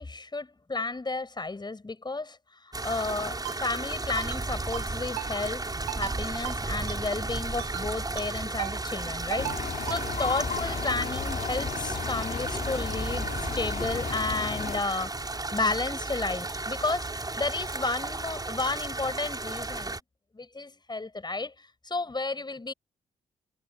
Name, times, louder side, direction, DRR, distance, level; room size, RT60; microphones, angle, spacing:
voice 1, 0.0-5.7 6.0-13.3 13.5-15.1 15.5-20.0 20.3-22.7, left 3 dB, 25° left, 8.0 m, -32 dB
sound 1, 2.7-20.0, right 2 dB, 20° right, 7.2 m, -34 dB
Ringtone, 3.5-3.6 4.2-4.4 4.7-4.9 5.2-5.3 5.9-6.2 6.5-6.6 6.9-7.0 7.6-7.9 8.2-8.3 8.6-8.7 9.3-9.6 9.9-10.0, right 38 dB, 75° right, 5.5 m, -35 dB
sound 2, 9.4-14.8, left 6 dB, 45° left, 2.8 m, -34 dB
figure-of-eight pair, 40°, 18 cm